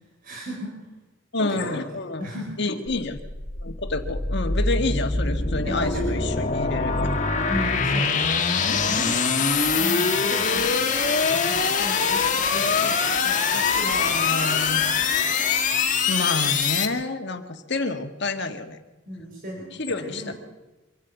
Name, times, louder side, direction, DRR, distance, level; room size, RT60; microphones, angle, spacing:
voice 1, 0.2-0.7 1.4-1.8 2.2-2.6 5.6-6.0 7.4-8.5 8.7-14.3 19.1-20.3, equal, 45° right, -2 dB, 5.2 m, -36 dB
voice 2, 1.3-2.3 2.6-3.2 3.6-7.1 8.6-8.9 13.8-14.8 16.1-18.8 19.8-20.3, left 3 dB, 60° left, 6 dB, 1.9 m, -28 dB
sound 1, 2.9-16.9, left 5 dB, 40° left, 1.7 m, -23 dB
25.0 x 14.0 x 8.3 m, 1.1 s
head